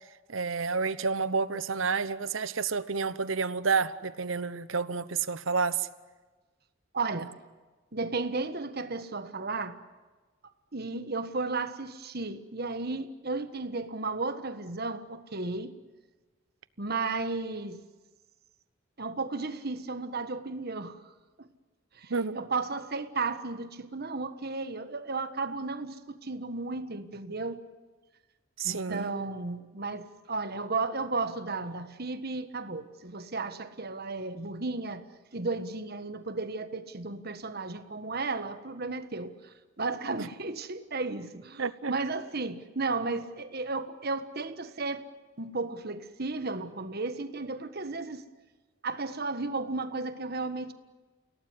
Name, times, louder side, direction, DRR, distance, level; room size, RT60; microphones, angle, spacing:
voice 1, 0.3-5.9 22.1-22.4 28.6-29.1 40.2-40.3 41.6-41.9, right 5 dB, 80° right, 1.0 m, -30 dB
voice 2, 6.9-7.3 7.9-9.8 10.7-15.7 16.8-17.8 19.0-21.1 21.4-21.5 21.9-27.6 28.6-35.0 35.3-45.0 45.4-48.2 48.8-50.7, right 3 dB, 50° right, 1.5 m, -34 dB
29.5 x 17.5 x 9.8 m
head